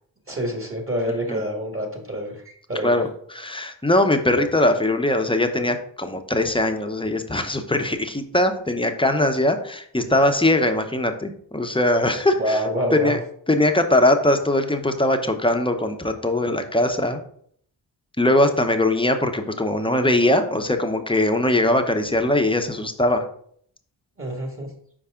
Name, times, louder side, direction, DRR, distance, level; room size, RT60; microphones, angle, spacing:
voice 1, 0.3-3.0 12.4-13.2 24.2-24.7, equal, 30° right, 2 dB, 2.0 m, -27 dB
voice 2, 2.8-12.6 12.9-13.2 13.5-17.2 18.2-23.2, left 1 dB, 10° left, 6 dB, 0.9 m, -21 dB
5.7 x 4.7 x 3.7 m, 0.63 s
cardioid pair, 50°, 44 cm